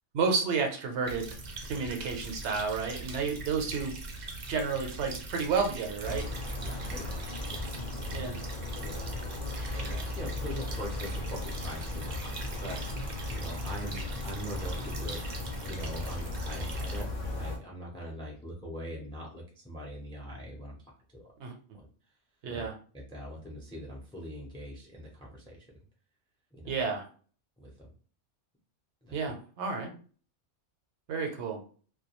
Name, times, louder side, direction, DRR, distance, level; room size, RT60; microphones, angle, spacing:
voice 1, 0.1-1.3 1.7-3.9 4.5-6.3 8.1-8.4 21.4-21.5 22.4-22.7 26.6-27.1 29.1-29.9 31.1-31.6, right 5 dB, 75° right, 3 dB, 0.9 m, -31 dB
sound 1, 1.0-17.0, right 3 dB, 50° right, 0.5 m, -42 dB
sound 2, 6.0-17.6, left 2 dB, 55° left, 0.7 m, -37 dB
voice 2, 6.6-7.6 8.0-8.2 8.8-9.1 9.7-12.8 13.3-20.8 21.7-21.9 22.5-22.7 22.9-25.8 26.5-26.7 27.6-27.9 29.0-29.2, equal, 5° left, -2 dB, 0.4 m, -42 dB
2.2 x 2.2 x 2.9 m, 0.41 s
omnidirectional pair, 1.2 m